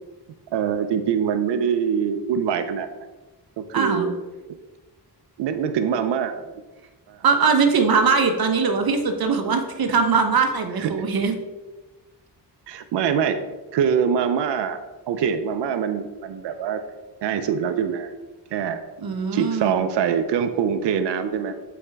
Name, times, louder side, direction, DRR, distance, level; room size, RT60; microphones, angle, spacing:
voice 1, 0.5-2.9 3.6-4.1 5.4-6.4 7.1-7.2 10.8-11.0 12.7-13.4 13.7-14.8 15.1-16.8 17.2-18.1 18.5-18.8 19.3-21.6, right 7 dB, 90° right, 9 dB, 0.5 m, -24 dB
voice 2, 3.7-4.1 7.2-11.3 19.0-19.7, right 5 dB, 60° right, 6 dB, 0.9 m, -21 dB
7.2 x 4.2 x 3.4 m, 1.2 s
cardioid pair, 75°, 41 cm